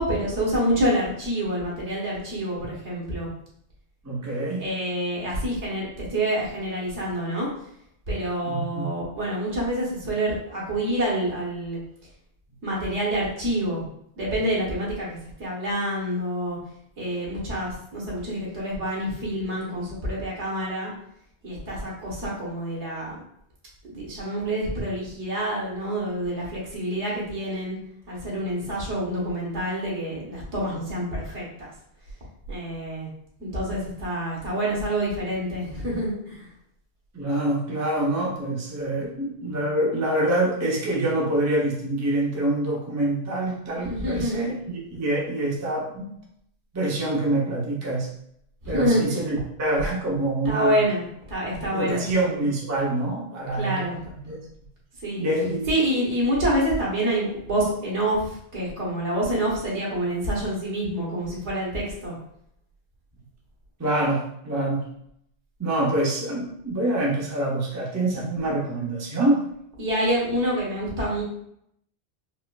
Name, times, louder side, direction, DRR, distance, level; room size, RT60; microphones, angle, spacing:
voice 1, 0.0-3.3 4.6-7.5 8.1-11.8 12.6-13.8 14.2-16.6 17.0-20.9 21.4-23.2 23.8-27.8 28.1-31.7 32.5-33.1 33.4-36.5 43.8-44.4 48.6-49.0 50.4-52.0 53.5-54.0 55.0-55.3 55.7-62.1 69.8-71.2, right 1 dB, 90° right, -5 dB, 1.5 m, -27 dB
voice 2, 4.0-4.6 8.4-8.9 37.1-46.1 46.7-48.1 48.7-50.8 51.7-53.8 54.2-54.4 55.2-55.7 63.8-64.9 65.6-69.5, right 1 dB, 20° right, -3 dB, 0.5 m, -26 dB
4.2 x 2.4 x 2.2 m, 0.73 s
omnidirectional pair, 1.1 m